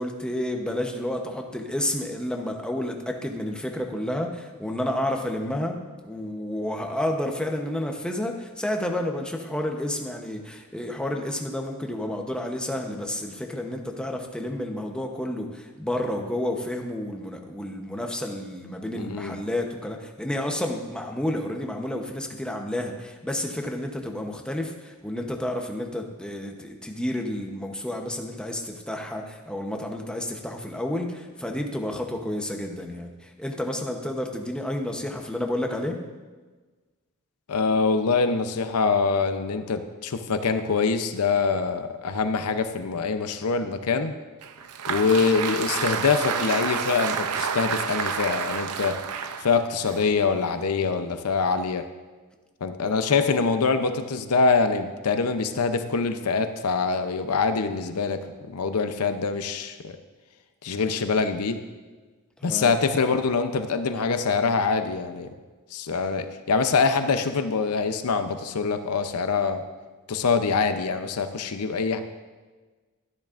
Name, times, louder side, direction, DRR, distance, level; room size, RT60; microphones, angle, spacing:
voice 1, 0.0-36.0 52.8-52.9 62.5-62.7, left 1 dB, 5° left, 2 dB, 0.8 m, -30 dB
voice 2, 18.9-19.4 37.5-44.2 44.9-49.0 49.4-51.9 52.6-60.0 60.6-61.6 62.4-65.3 65.7-69.6 70.1-72.0, left 4 dB, 85° left, 9 dB, 0.6 m, -24 dB
Applause, 44.4-50.7, right 6 dB, 90° right, 0.6 m, -30 dB
12.5 x 10.5 x 2.5 m, 1.3 s
head